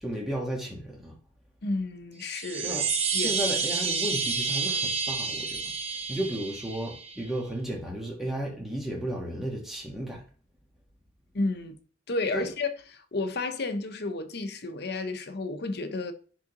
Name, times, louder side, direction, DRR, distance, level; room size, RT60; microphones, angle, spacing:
voice 1, 0.0-1.1 2.6-2.9 3.1-5.7 6.1-10.2 12.3-12.5, right 1 dB, ahead, 1.3 m, -33 dB
voice 2, 1.6-2.8 3.1-3.3 11.3-11.8 12.1-16.1, left 3 dB, 60° left, 0.8 m, -31 dB
sound 1, 2.2-7.3, right 5 dB, 35° right, 0.9 m, -30 dB
10.0 x 3.6 x 3.0 m
head